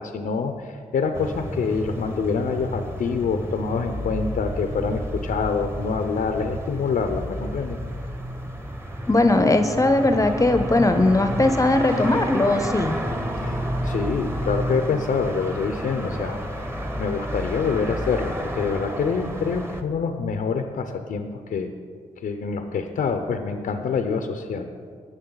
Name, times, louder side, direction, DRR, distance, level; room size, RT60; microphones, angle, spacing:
voice 1, 0.0-7.8 13.4-21.7 22.2-24.7, left 5 dB, 75° left, 6 dB, 0.7 m, -26 dB
sound 1, 1.1-19.8, equal, 15° right, 1.2 m, -31 dB
sound 2, 8.9-14.7, equal, 40° right, 1.9 m, -39 dB
voice 2, 9.1-12.9, left 2 dB, 20° left, 8 dB, 0.7 m, -19 dB
19.0 x 6.5 x 4.0 m, 2.1 s
cardioid pair, 55°, 14 cm